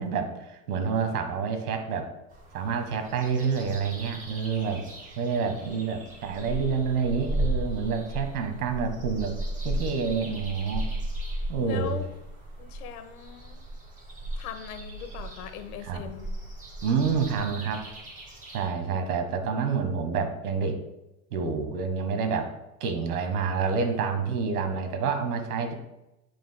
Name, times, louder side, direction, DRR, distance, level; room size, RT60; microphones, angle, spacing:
voice 1, 0.0-2.1 2.5-4.9 5.1-9.4 9.6-10.9 11.5-12.0 15.8-16.0 16.8-17.8 18.5-20.8 21.3-22.5 22.8-25.7, right 5 dB, 85° right, 6 dB, 1.5 m, -28 dB
sound 1, 2.3-18.7, right 1 dB, 20° right, 2.8 m, -36 dB
voice 2, 11.7-12.1 12.6-13.6 14.4-16.3, left 8 dB, 80° left, 8 dB, 1.2 m, -39 dB
13.0 x 5.1 x 2.2 m, 0.91 s
supercardioid pair, 115°, 44 cm